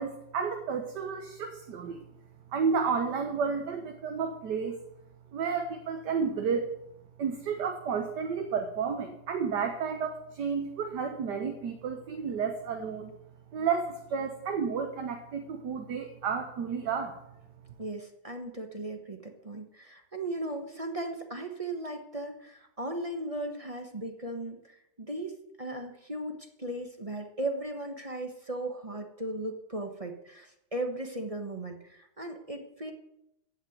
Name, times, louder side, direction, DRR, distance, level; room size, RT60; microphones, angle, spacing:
voice 1, 0.0-2.0 2.5-4.8 5.3-6.7 7.2-13.1 13.5-17.2, right 6 dB, 60° right, 5 dB, 1.6 m, -31 dB
voice 2, 17.8-32.9, right 1 dB, 20° right, 4 dB, 1.0 m, -37 dB
15.5 x 5.9 x 9.3 m, 0.81 s
omnidirectional pair, 2.2 m